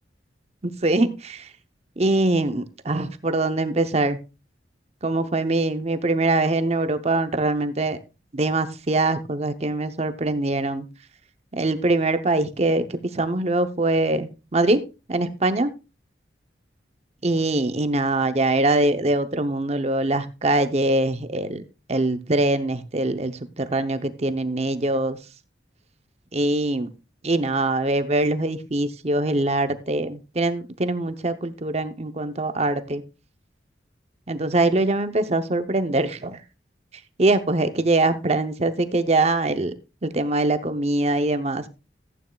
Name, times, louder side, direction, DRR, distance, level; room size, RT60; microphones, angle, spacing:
voice 1, 0.6-1.5 2.0-4.2 5.0-8.0 8.3-10.9 11.6-12.8 13.1-14.8 15.1-15.7 17.2-21.6 21.9-25.2 26.3-26.9 27.2-33.0 34.3-36.4 37.2-39.7 40.0-41.6, right 2 dB, 35° right, 10 dB, 0.7 m, -23 dB
14.5 x 9.1 x 2.3 m, 0.29 s
head